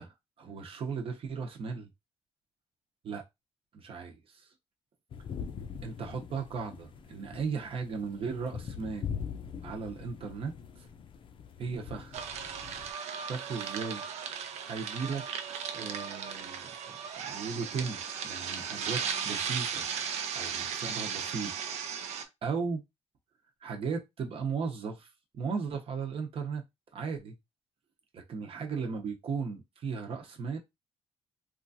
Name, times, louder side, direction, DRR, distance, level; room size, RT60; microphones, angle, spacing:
voice 1, 0.0-1.9 3.0-3.2 3.7-4.5 5.8-9.1 9.6-10.9 11.6-12.3 13.3-14.0 14.6-15.2 15.7-19.9 20.3-22.8 23.6-25.1 25.3-26.6 26.9-27.3 28.1-30.6, right 5 dB, 55° right, 0.8 m, -36 dB
sound 1, 5.1-12.9, left 7 dB, 50° left, 0.5 m, -42 dB
sound 2, 12.1-22.2, right 7 dB, 80° right, 0.5 m, -36 dB
3.0 x 2.4 x 2.7 m
cardioid pair, 110°, 11 cm